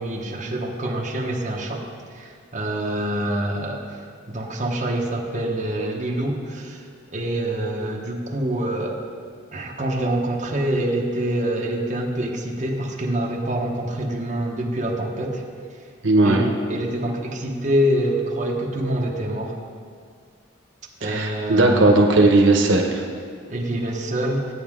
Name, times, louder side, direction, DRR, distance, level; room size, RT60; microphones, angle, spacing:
voice 1, 0.0-1.8 2.1-3.8 4.3-6.8 7.1-9.1 9.5-15.4 16.2-16.4 16.7-19.6 21.0-21.8 23.5-24.5, right 1 dB, 40° right, -2 dB, 1.1 m, -25 dB
voice 2, 16.0-16.5 21.0-23.0, right 2 dB, 75° right, 2 dB, 0.9 m, -17 dB
14.0 x 8.6 x 3.6 m, 2.1 s
head